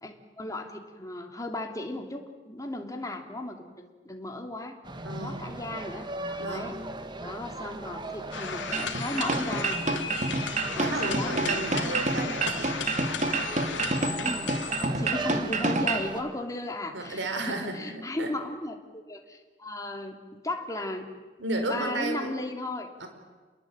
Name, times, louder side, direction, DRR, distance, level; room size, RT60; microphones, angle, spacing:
voice 1, 0.0-4.8 5.2-6.1 6.5-6.8 7.2-9.8 10.7-11.8 14.2-14.5 14.8-21.1 21.7-22.9, left 1 dB, 20° left, 3 dB, 3.0 m, -36 dB
sound 1, 4.8-16.2, right 1 dB, 25° right, 2.0 m, -38 dB
voice 2, 5.0-5.4 6.4-6.7 10.8-12.8 16.0-16.1 16.9-18.3 21.4-22.3 23.0-23.1, right 2 dB, 80° right, 5 dB, 4.8 m, -33 dB
sound 2, 8.3-14.9, left 6 dB, 80° left, 2.8 m, -35 dB
sound 3, 8.7-16.1, right 3 dB, 40° right, 2.5 m, -28 dB
28.5 x 21.5 x 8.9 m, 1.4 s
head